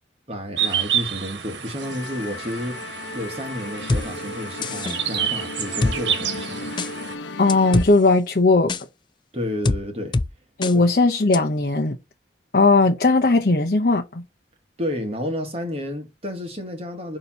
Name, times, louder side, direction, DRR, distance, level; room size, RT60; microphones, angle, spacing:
voice 1, 0.3-6.7 9.3-10.2 14.8-17.2, left 1 dB, 35° right, 1.3 m, -31 dB
sound 1, 0.6-7.1, right 8 dB, 75° right, 1.1 m, -29 dB
Musical instrument, 1.8-7.9, left 2 dB, 85° left, 0.9 m, -35 dB
sound 2, 3.9-4.0 4.6-5.0 5.8-6.0 6.8-6.9 7.5-7.9 8.7-8.8 9.6-9.8 10.1-10.3 10.6-10.7 11.3-11.4, left 2 dB, 25° left, 0.4 m, -22 dB
voice 2, 7.4-8.7 10.6-12.0 12.5-14.2, left 3 dB, 50° left, 0.8 m, -18 dB
6.8 x 2.9 x 5.5 m
head